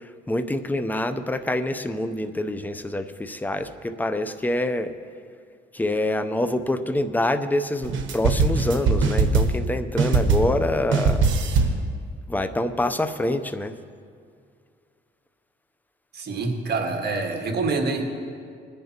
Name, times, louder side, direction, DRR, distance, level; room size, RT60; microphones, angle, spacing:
voice 1, 0.3-4.9 5.7-11.3 12.3-13.7, left 1 dB, 10° left, 8 dB, 0.7 m, -26 dB
sound 1, 7.8-9.7 10.0-10.7 10.9-11.9, right 4 dB, 75° right, 1.2 m, -21 dB
voice 2, 16.1-18.1, right 3 dB, 55° right, 3 dB, 1.7 m, -26 dB
21.5 x 10.5 x 3.0 m, 2.2 s
cardioid pair, 90°, 20 cm